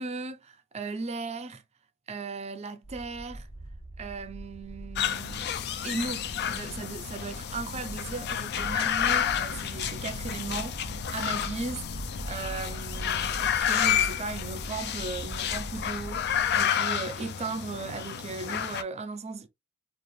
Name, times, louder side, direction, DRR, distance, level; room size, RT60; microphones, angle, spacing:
voice 1, 0.0-1.6 2.1-3.5 4.0-19.5, right 4 dB, 30° right, 0.5 m, -37 dB
sound 1, 2.8-16.6, right 1 dB, 75° left, 1.3 m, -42 dB
sound 2, 5.0-18.8, left 9 dB, 50° left, 0.4 m, -30 dB
3.9 x 2.4 x 3.1 m
head